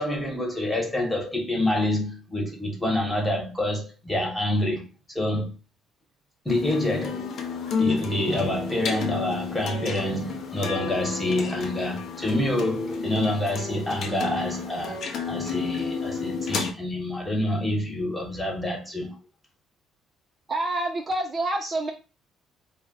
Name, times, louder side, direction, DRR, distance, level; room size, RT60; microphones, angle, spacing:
voice 1, 0.0-4.8 5.1-5.5 6.4-7.3 7.8-15.0 15.3-19.2, left 1 dB, 5° left, 1.2 m, -27 dB
sound 1, 6.5-16.7, left 5 dB, 60° left, 0.6 m, -31 dB
voice 2, 20.5-21.9, right 2 dB, 35° right, 0.4 m, -27 dB
2.4 x 2.1 x 3.8 m
cardioid pair, 90°, 0 cm